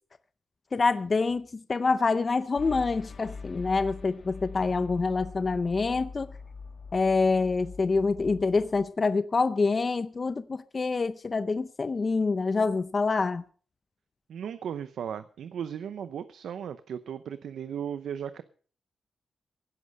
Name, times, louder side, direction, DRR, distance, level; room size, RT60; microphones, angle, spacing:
voice 1, 0.7-6.3 6.9-13.4, left 4 dB, 35° left, 0.6 m, -26 dB
sound 1, 2.6-8.8, left 4 dB, 50° left, 2.2 m, -43 dB
voice 2, 14.3-18.4, right 8 dB, 85° right, 0.7 m, -36 dB
16.5 x 11.0 x 5.3 m
wide cardioid pair, 125°, 0 cm